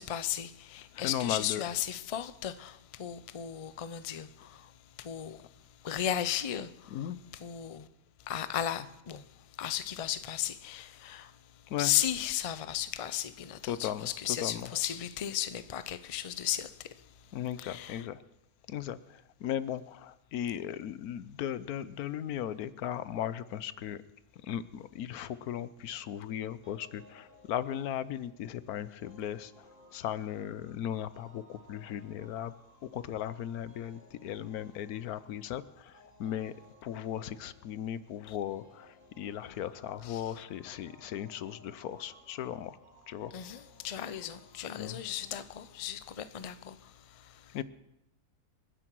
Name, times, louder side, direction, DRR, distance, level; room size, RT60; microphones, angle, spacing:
voice 1, 0.0-4.7 5.0-5.5 5.8-7.9 8.3-9.2 9.6-11.3 11.8-16.9 17.6-18.1 38.3-38.4 40.0-40.4 43.3-47.5, left 11 dB, 50° left, 0.4 m, -35 dB
voice 2, 0.9-1.6 6.9-7.2 11.7-11.9 13.6-14.1 14.4-14.7 17.3-18.2 18.7-24.0 24.4-29.6 29.9-32.5 32.9-36.5 36.8-42.8 43.1-43.3 44.8-45.0 47.5-47.6, left 10 dB, 90° left, 1.2 m, -37 dB
sound 1, 26.6-45.8, equal, 35° right, 4.4 m, -60 dB
28.0 x 9.9 x 4.6 m
omnidirectional pair, 1.5 m